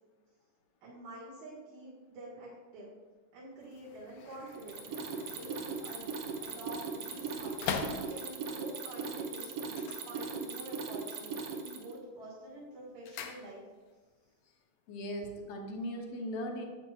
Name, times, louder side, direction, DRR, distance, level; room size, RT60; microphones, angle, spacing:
voice 1, 0.8-3.0 3.3-4.9 5.3-6.1 6.4-13.6, right 1 dB, 90° right, -9 dB, 3.2 m, -47 dB
sound 1, 3.6-8.6 9.6-10.8 11.1-11.6 11.9-14.0 14.3-14.4, left 6 dB, 90° left, 2.2 m, -43 dB
Mechanisms, 4.5-12.0, right 5 dB, 70° right, 1.4 m, -39 dB
voice 2, 14.9-16.6, equal, 65° left, 2 dB, 1.8 m, -38 dB
10.0 x 8.0 x 2.4 m, 1.3 s
omnidirectional pair, 3.3 m